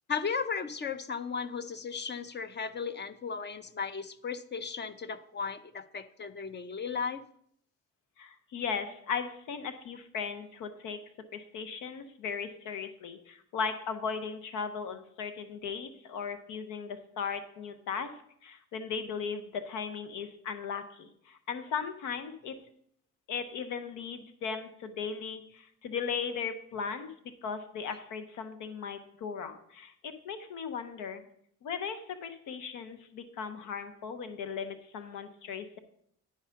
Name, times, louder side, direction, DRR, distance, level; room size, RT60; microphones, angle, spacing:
voice 1, 0.1-7.2, left 5 dB, 35° left, 12 dB, 0.7 m, -35 dB
voice 2, 8.2-11.0 11.3-18.1 18.4-22.5 23.3-27.1 27.4-31.2 31.6-35.8, left 6 dB, 90° left, 9 dB, 0.9 m, -37 dB
10.5 x 4.8 x 5.7 m, 0.68 s
cardioid pair, 90°, 30 cm